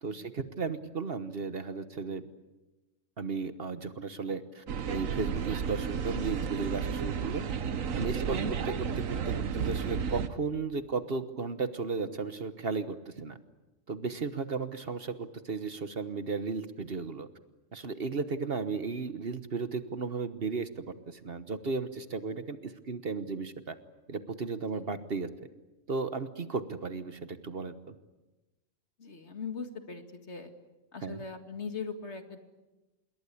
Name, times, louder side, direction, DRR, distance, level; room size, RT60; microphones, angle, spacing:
voice 1, 0.0-2.2 3.2-7.4 7.9-13.4 13.9-17.3 17.7-23.7 24.1-25.3 25.9-27.9 31.0-31.2, right 4 dB, 50° right, 11 dB, 1.3 m, -35 dB
sound 1, 4.7-10.3, right 7 dB, 85° right, 1.5 m, -32 dB
voice 2, 29.0-30.5 30.9-32.4, left 5 dB, 60° left, 7 dB, 2.4 m, -40 dB
27.5 x 21.5 x 8.5 m, 1.1 s
omnidirectional pair, 1.3 m